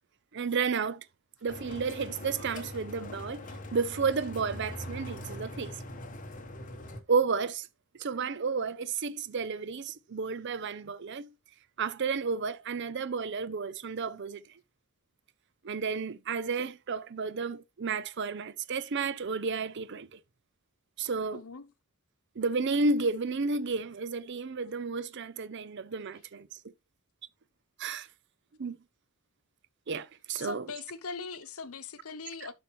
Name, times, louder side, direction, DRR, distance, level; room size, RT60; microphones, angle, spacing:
voice 1, 0.3-1.1 1.4-3.4 3.7-5.7 7.1-7.7 8.0-11.3 11.8-14.4 15.6-20.2 21.0-21.4 22.4-26.5 27.8-28.1 28.6-28.8 29.9-30.7 32.4-32.5, right 4 dB, 55° right, 0.6 m, -32 dB
sound 1, 1.5-7.0, left 1 dB, 35° left, 1.3 m, -42 dB
voice 2, 21.3-21.7 30.4-32.5, left 4 dB, 85° left, 0.9 m, -40 dB
11.0 x 5.9 x 3.1 m
head